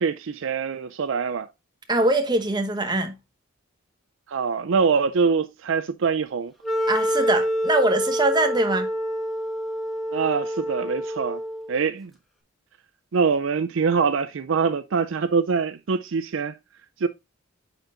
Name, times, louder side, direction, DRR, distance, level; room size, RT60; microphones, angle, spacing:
voice 1, 0.0-1.5 4.3-6.5 10.1-11.4 11.7-12.1 13.1-16.5 17.0-17.1, right 5 dB, 65° right, 0.4 m, -24 dB
voice 2, 1.9-3.2 6.9-8.9, right 2 dB, 20° right, 1.1 m, -23 dB
Wind instrument woodwind instrument, 6.6-11.7, equal, ahead, 1.2 m, -27 dB
10.0 x 4.5 x 2.5 m
head